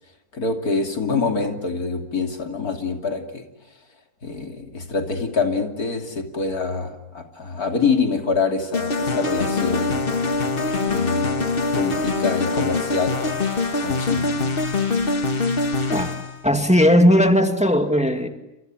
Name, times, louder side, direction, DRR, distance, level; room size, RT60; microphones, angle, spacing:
voice 1, 0.3-3.4 4.2-10.0 10.9-11.4 11.7-13.5 13.8-14.5, left 4 dB, 80° left, 3.3 m, -25 dB
sound 1, 8.7-16.4, left 3 dB, 40° left, 1.7 m, -23 dB
voice 2, 16.4-18.3, equal, 5° right, 2.1 m, -17 dB
28.5 x 27.5 x 7.5 m
omnidirectional pair, 1.6 m